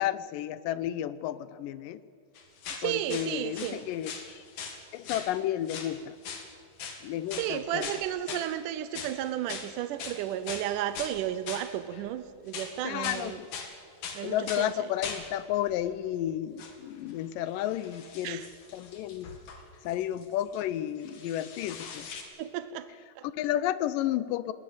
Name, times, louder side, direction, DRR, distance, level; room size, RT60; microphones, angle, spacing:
voice 1, 0.0-2.0 2.8-4.4 4.9-6.2 7.0-7.9 12.8-13.5 14.2-18.4 18.7-19.3 19.8-22.1 23.2-24.5, left 12 dB, 80° left, 16 dB, 2.0 m, -32 dB
sound 1, 2.4-3.8 4.0-4.8 5.0-5.3 5.7-5.9 6.2-6.5 6.8-7.0 7.3-7.5 7.8-8.5 8.9-9.2 9.5-9.7 10.0-11.2 11.5-12.1 12.5-13.3 13.5-13.7 14.0-14.7 15.0-15.3 15.7-15.8 16.6-16.7 17.1-20.6 21.0-22.2, left 6 dB, 60° left, 3.5 m, -40 dB
voice 2, 2.8-3.8 7.4-13.4 14.1-14.7 18.2-18.5 22.4-22.9 23.2-23.3, right 12 dB, 80° right, 12 dB, 1.9 m, -33 dB
20.0 x 19.0 x 8.0 m, 2.3 s
omnidirectional pair, 4.4 m